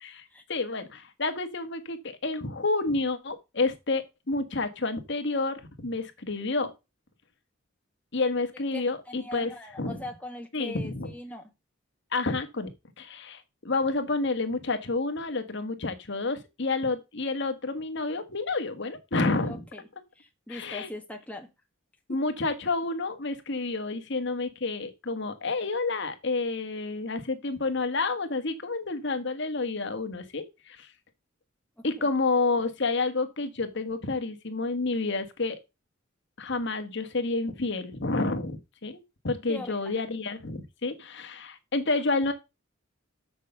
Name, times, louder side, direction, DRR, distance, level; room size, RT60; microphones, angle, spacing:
voice 1, 0.5-6.7 8.1-9.5 9.8-10.0 10.5-11.1 12.1-12.7 13.0-19.6 20.5-20.9 22.1-30.9 31.8-35.6 36.4-42.3, left 3 dB, 60° left, 1.4 m, -29 dB
voice 2, 8.7-11.5 19.5-19.8 20.2-21.5 22.1-22.2 32.0-32.1 39.5-40.0, left 1 dB, 5° left, 1.3 m, -41 dB
6.8 x 6.6 x 6.6 m
head